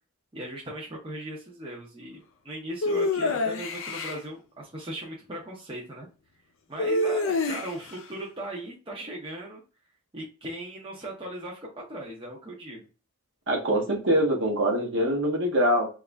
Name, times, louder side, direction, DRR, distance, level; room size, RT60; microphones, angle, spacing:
voice 1, 0.3-6.1 6.7-9.6 10.1-12.9, right 1 dB, 25° right, -3 dB, 0.6 m, -38 dB
sound 1, 2.8-4.2 6.8-7.9, left 2 dB, 60° left, 0.5 m, -27 dB
voice 2, 13.5-15.9, equal, 55° right, 1 dB, 0.9 m, -24 dB
2.9 x 2.4 x 3.3 m, 0.34 s
head